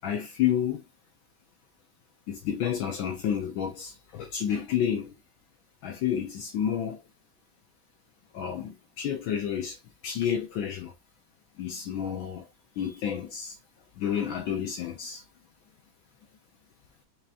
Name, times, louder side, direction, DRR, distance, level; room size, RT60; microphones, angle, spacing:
voice 1, 0.0-0.8 2.3-5.1 5.8-7.0 8.3-9.8 10.0-10.9 11.6-12.5 12.8-13.6 14.0-15.2, left 9 dB, 75° left, 1.4 m, -30 dB
4.6 x 2.9 x 2.4 m
omnidirectional pair, 2.2 m